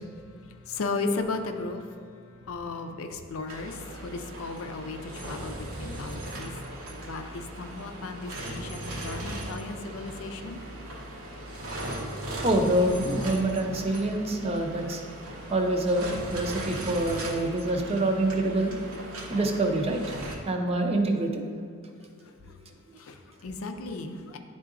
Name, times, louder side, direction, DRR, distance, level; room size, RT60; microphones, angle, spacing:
voice 1, 0.0-6.6 7.0-10.6 12.1-12.2 22.1-22.5 22.9-24.4, left 3 dB, 70° left, 6 dB, 0.5 m, -36 dB
sound 1, 3.5-20.4, right 1 dB, 85° right, 0.9 m, -38 dB
voice 2, 12.4-15.0 15.5-18.7 19.3-20.0 20.4-21.5, right 1 dB, 30° right, 3 dB, 0.5 m, -26 dB
9.9 x 3.7 x 2.5 m, 2.2 s
head